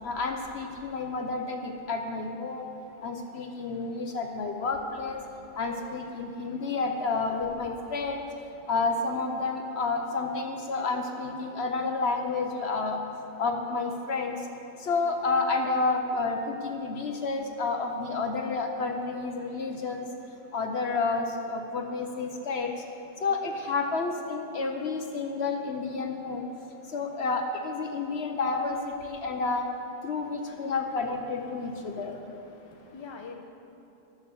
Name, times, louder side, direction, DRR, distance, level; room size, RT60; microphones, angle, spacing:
voice 1, 0.0-2.7 3.0-5.2 5.5-8.2 8.7-13.0 13.4-14.5 14.8-20.1 20.5-22.7 23.2-26.5 26.8-29.7 30.0-32.2, left 3 dB, 60° left, 4 dB, 1.0 m, -30 dB
voice 2, 32.3-33.3, left 5 dB, 25° left, 2 dB, 0.7 m, -46 dB
12.5 x 6.7 x 7.0 m, 3.0 s
omnidirectional pair, 1.3 m